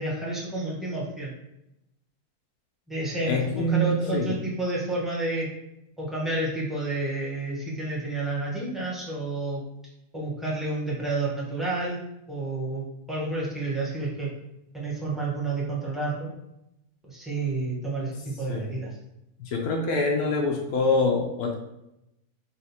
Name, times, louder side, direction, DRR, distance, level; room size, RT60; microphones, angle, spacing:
voice 1, 0.0-1.3 2.9-5.5 6.0-9.6 10.1-12.0 12.3-12.8 13.1-14.3 14.7-16.3 17.1-18.9, right 2 dB, ahead, -5 dB, 0.9 m, -30 dB
voice 2, 3.2-4.4 18.5-18.8 19.4-21.5, left 2 dB, 75° left, 0 dB, 1.1 m, -25 dB
4.2 x 2.5 x 4.0 m, 0.86 s
omnidirectional pair, 1.6 m